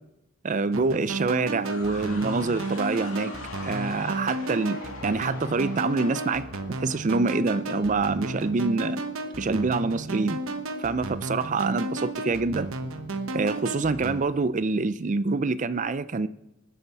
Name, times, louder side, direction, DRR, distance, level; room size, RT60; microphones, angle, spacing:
voice 1, 0.4-3.3 3.6-9.0 9.4-10.4 10.8-12.7 13.3-16.3, right 3 dB, 35° right, 0.4 m, -26 dB
sound 1, 0.7-14.2, right 2 dB, 80° right, 1.1 m, -33 dB
sound 2, 1.6-7.4, left 4 dB, 75° left, 2.5 m, -41 dB
20.5 x 8.1 x 4.7 m
head